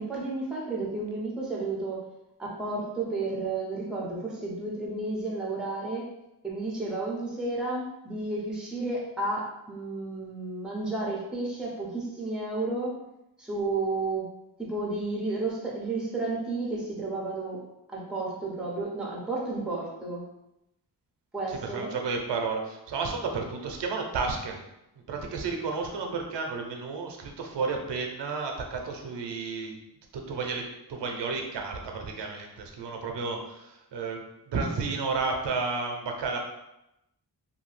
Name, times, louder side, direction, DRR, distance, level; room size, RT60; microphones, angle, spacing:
voice 1, 0.0-2.1 2.4-6.1 6.4-13.0 13.4-14.3 14.6-17.6 17.9-20.3 21.3-21.9, right 2 dB, ahead, -4 dB, 0.5 m, -32 dB
voice 2, 21.5-24.6 25.1-29.7 30.1-36.4, right 4 dB, 90° right, 2 dB, 0.6 m, -32 dB
2.7 x 2.3 x 3.1 m, 0.88 s
wide cardioid pair, 170°, 41 cm